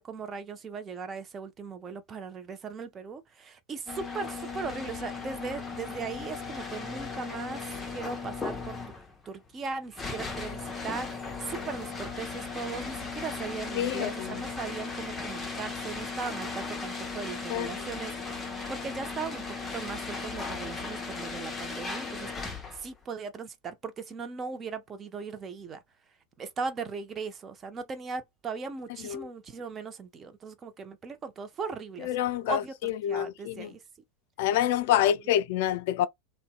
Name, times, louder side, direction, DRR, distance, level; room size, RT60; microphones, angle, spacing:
voice 1, 0.0-7.6 7.9-8.8 9.3-18.4 18.7-19.4 19.7-25.8 26.4-32.1 32.5-33.8, right 5 dB, 25° right, 0.6 m, -38 dB
sound 1, 3.9-22.9, left 4 dB, 15° left, 0.7 m, -37 dB
voice 2, 13.8-14.4 17.5-17.8 29.0-29.3 32.0-33.7 34.4-36.1, left 11 dB, 60° left, 0.3 m, -27 dB
2.7 x 2.1 x 2.4 m
hypercardioid pair, 90°, 0 cm